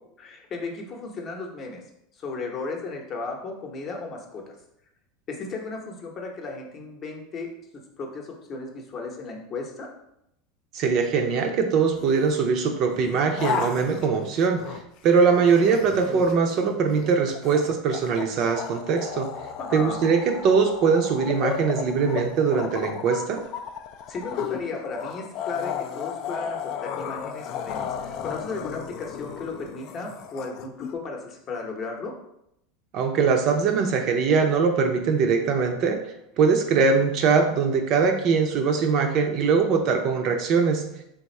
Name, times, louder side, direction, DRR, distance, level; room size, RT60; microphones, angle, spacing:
voice 1, 0.2-1.8 2.2-4.5 5.3-7.5 8.0-9.9 19.6-20.0 24.1-32.2, left 3 dB, 30° left, 1 dB, 0.8 m, -35 dB
voice 2, 10.7-14.8 15.0-19.3 19.7-23.4 32.9-36.0 36.4-40.9, right 5 dB, 45° right, 4 dB, 0.5 m, -22 dB
sound 1, 11.9-12.4 12.9-15.0 15.3-30.9, left 7 dB, 50° left, 0.4 m, -34 dB
3.5 x 2.5 x 4.2 m, 0.80 s
supercardioid pair, 140°, 0 cm